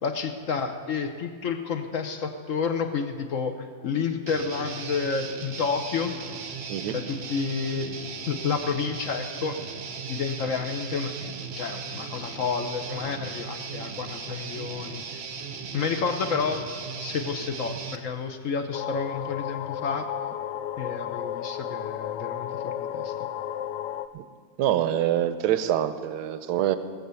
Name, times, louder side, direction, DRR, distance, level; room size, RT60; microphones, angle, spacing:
voice 1, 0.0-6.1 6.9-7.9 8.3-9.6 10.1-15.2 15.7-16.7 17.0-20.1 20.8-23.1, left 5 dB, 55° left, 7 dB, 1.0 m, -30 dB
Guitar, 4.3-18.0, right 5 dB, 50° right, 0.8 m, -37 dB
sound 1, 18.7-24.1, left 10 dB, 75° left, 1.1 m, -33 dB
voice 2, 24.6-26.8, right 11 dB, 70° right, 11 dB, 1.2 m, -25 dB
18.0 x 7.9 x 6.9 m, 2.1 s
omnidirectional pair, 2.0 m